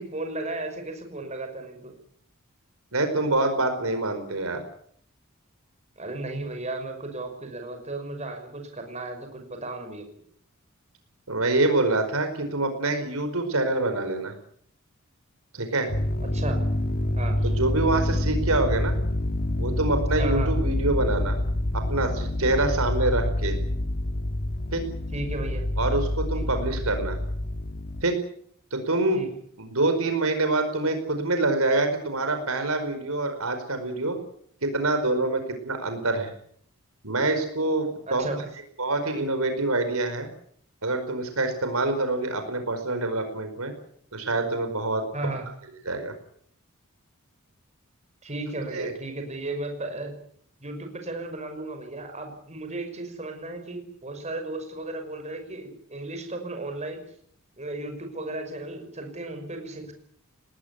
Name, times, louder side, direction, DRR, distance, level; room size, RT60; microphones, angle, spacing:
voice 1, 0.0-1.9 6.0-10.0 16.3-16.6 17.2-17.4 20.2-20.5 25.1-25.7 26.3-26.4 29.1-29.3 38.1-38.4 45.1-45.5 48.2-50.1 50.6-57.0 57.6-59.9, right 2 dB, 30° right, 5 dB, 5.8 m, -34 dB
voice 2, 2.9-4.6 11.3-14.3 15.5-15.9 17.4-18.9 19.6-21.4 21.9-23.6 24.7-24.8 25.8-27.2 28.0-28.1 28.7-29.2 29.6-34.2 34.6-36.3 37.0-38.4 38.8-40.3 40.8-43.7 44.1-45.0 45.9-46.1 48.7-48.9, right 2 dB, 75° right, 7 dB, 5.0 m, -26 dB
sound 1, 15.9-28.0, left 1 dB, 45° left, 1.5 m, -27 dB
20.0 x 19.0 x 9.8 m, 0.64 s
head